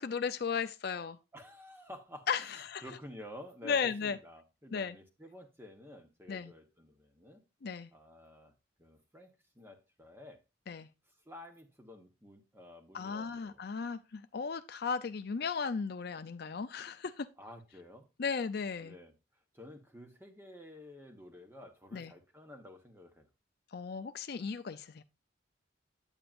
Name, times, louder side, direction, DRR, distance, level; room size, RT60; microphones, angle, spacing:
voice 1, 0.0-1.2 2.3-2.8 3.6-4.2 4.7-4.9 6.3-6.5 7.6-7.9 10.7-10.9 12.9-17.3 18.2-18.9 21.9-22.1 23.7-25.0, left 6 dB, 55° left, 0.4 m, -35 dB
voice 2, 1.3-7.4 7.9-8.5 8.8-10.4 11.2-13.6 17.4-18.1 18.8-19.1 19.5-23.3, left 1 dB, 10° right, 1.2 m, -51 dB
8.9 x 8.6 x 2.5 m
head